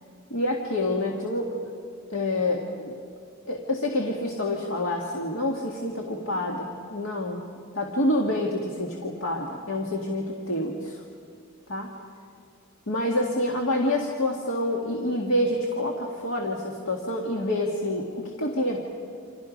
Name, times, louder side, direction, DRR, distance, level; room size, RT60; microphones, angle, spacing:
voice 1, 0.3-1.6 2.1-2.9 3.5-7.4 7.7-11.0 11.7-11.9 12.9-18.8, left 1 dB, 65° left, 0 dB, 2.0 m, -27 dB
29.5 x 27.0 x 5.3 m, 2.4 s
head